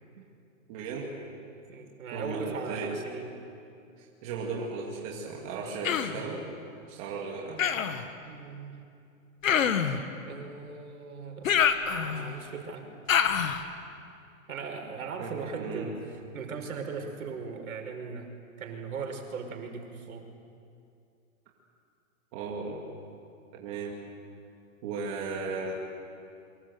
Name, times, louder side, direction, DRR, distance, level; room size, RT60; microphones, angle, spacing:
voice 1, 0.7-1.1 2.1-3.0 4.0-6.4 6.9-7.6 15.2-15.9 22.3-22.8 23.5-24.0 24.8-25.9, right 4 dB, 25° right, -2 dB, 2.3 m, -36 dB
voice 2, 1.7-3.3 8.2-8.8 10.3-12.9 14.5-16.0 16.3-18.3 18.6-20.3, right 5 dB, 80° right, 4 dB, 5.3 m, -39 dB
Human voice, 5.8-6.2 7.6-8.0 9.4-10.0 11.4-12.3 13.1-13.6, left 8 dB, 70° left, 2.0 m, -26 dB
29.0 x 24.5 x 8.0 m, 2.5 s
hypercardioid pair, 180°, 41 cm